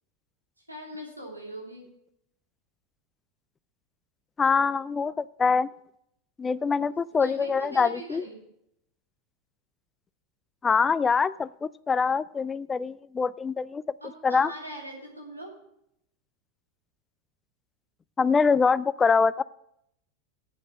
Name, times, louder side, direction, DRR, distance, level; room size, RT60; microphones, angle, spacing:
voice 1, 0.6-1.9 7.2-8.4 14.0-15.5, right 1 dB, 90° right, -2 dB, 3.1 m, -41 dB
voice 2, 4.4-5.7 6.4-8.2 10.6-13.8 14.2-14.5 18.2-19.4, left 5 dB, 20° left, 19 dB, 0.3 m, -24 dB
8.4 x 7.9 x 7.4 m, 0.77 s
figure-of-eight pair, 85°, 0 cm